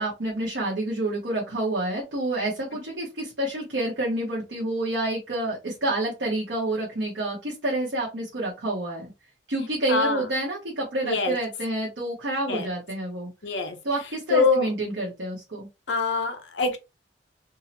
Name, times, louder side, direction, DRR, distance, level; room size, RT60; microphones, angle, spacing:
voice 1, 0.0-9.1 9.5-13.3 13.8-15.7, right 1 dB, 70° right, 1.0 m, -28 dB
voice 2, 9.9-10.3 11.0-11.4 12.5-12.7 13.4-13.8 14.3-14.7 15.9-16.8, left 4 dB, 75° left, 0.7 m, -24 dB
3.6 x 2.0 x 2.8 m
head